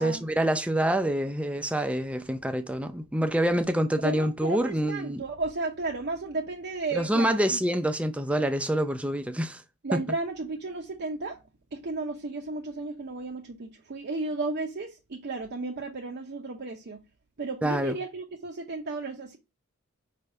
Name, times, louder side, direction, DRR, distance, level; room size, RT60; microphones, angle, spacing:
voice 1, 0.0-5.2 7.0-9.6 9.9-10.0 17.6-17.9, right 1 dB, 5° right, 0.5 m, -26 dB
voice 2, 4.0-7.6 9.8-11.4 11.7-17.0 17.4-19.4, right 3 dB, 50° right, 0.6 m, -33 dB
5.1 x 3.4 x 5.5 m
head